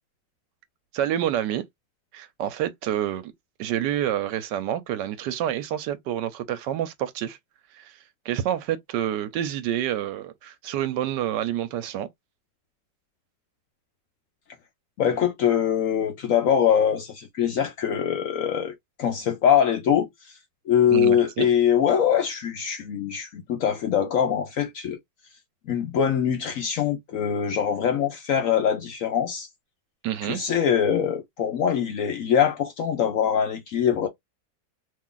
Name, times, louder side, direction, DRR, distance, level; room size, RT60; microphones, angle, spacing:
voice 1, 0.9-1.6 2.1-3.3 3.6-7.4 7.7-7.9 8.3-12.1 20.9-21.5 30.0-30.4, right 11 dB, 80° right, 1.2 m, -28 dB
voice 2, 15.0-18.7 19.0-20.1 20.7-25.0 25.7-29.5 30.2-34.1, left 8 dB, 65° left, 0.8 m, -23 dB
3.0 x 2.3 x 3.7 m
omnidirectional pair, 1.9 m